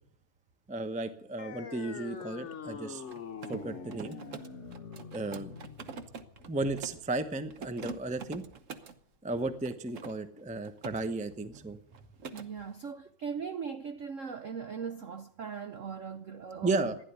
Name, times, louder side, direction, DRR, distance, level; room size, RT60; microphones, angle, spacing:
voice 1, 0.7-3.0 3.5-4.2 5.1-5.5 6.5-8.4 9.2-11.8 16.6-17.0, right 2 dB, 10° right, 0.4 m, -34 dB
sound 1, 1.4-8.4, left 6 dB, 45° left, 1.0 m, -45 dB
Mechanisms, 3.0-7.1 7.5-9.0 9.6-11.0 11.3-11.6 11.9-12.5, right 5 dB, 45° right, 1.1 m, -45 dB
voice 2, 12.3-16.9, right 6 dB, 65° right, 0.7 m, -39 dB
15.5 x 11.0 x 8.2 m
omnidirectional pair, 2.3 m